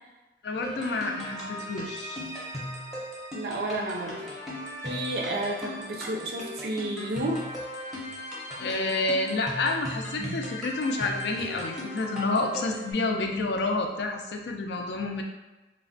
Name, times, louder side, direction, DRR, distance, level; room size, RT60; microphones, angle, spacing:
voice 1, 0.4-2.2 8.6-15.2, left 2 dB, 65° left, 3 dB, 0.3 m, -29 dB
sound 1, 0.6-12.9, equal, ahead, 0.6 m, -38 dB
voice 2, 3.3-4.2 4.8-7.5 10.2-10.4, right 1 dB, 55° right, 1 dB, 0.4 m, -31 dB
3.2 x 2.1 x 2.5 m, 1.1 s
head